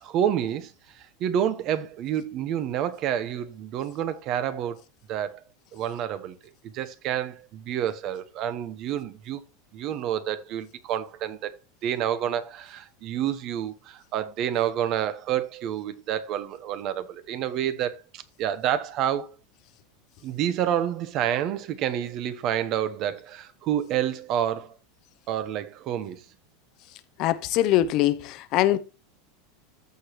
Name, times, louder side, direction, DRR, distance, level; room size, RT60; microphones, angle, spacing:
voice 1, 0.0-4.8 5.1-5.4 5.7-6.3 6.6-9.4 9.7-11.5 11.8-19.3 20.2-24.8 25.3-26.2, right 10 dB, 40° right, 0.9 m, -29 dB
voice 2, 27.2-28.8, left 13 dB, 45° left, 0.7 m, -22 dB
15.0 x 5.0 x 2.9 m
supercardioid pair, 145°, 0 cm